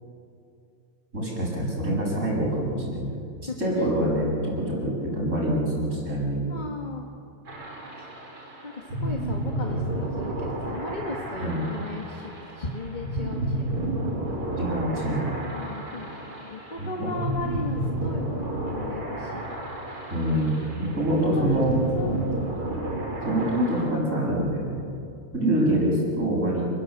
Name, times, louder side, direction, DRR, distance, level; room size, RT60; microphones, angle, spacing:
voice 1, 1.1-3.2 3.6-6.5 11.4-11.6 14.6-15.3 16.8-17.1 20.1-21.8 23.2-24.8 25.3-26.6, right 1 dB, 35° right, -3 dB, 7.4 m, -25 dB
voice 2, 3.5-3.9 6.5-7.1 8.0-8.1 8.6-13.9 15.5-19.6 21.2-21.6 21.9-22.2 25.4-25.9, left 2 dB, 25° left, 1 dB, 1.6 m, -36 dB
sound 1, 7.5-23.9, right 1 dB, 85° right, 5.5 m, -31 dB
29.0 x 20.5 x 8.0 m, 2.5 s
omnidirectional pair, 2.4 m